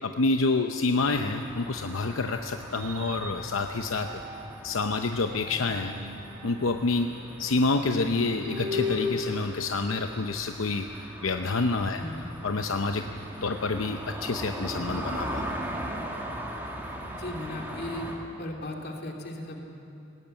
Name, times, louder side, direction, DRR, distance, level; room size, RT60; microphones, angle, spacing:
voice 1, 0.0-4.2 4.6-5.9 6.4-7.1 7.4-13.0 13.4-15.5, left 3 dB, 80° left, 5 dB, 0.7 m, -28 dB
sound 1, 1.0-18.1, right 1 dB, 10° right, 2.4 m, -40 dB
sound 2, 2.6-4.7 5.2-10.4, left 3 dB, 75° right, 4.4 m, -38 dB
voice 2, 17.1-18.1 18.4-19.6, left 1 dB, 50° left, 1 dB, 2.7 m, -36 dB
19.5 x 17.5 x 9.0 m, 2.8 s
head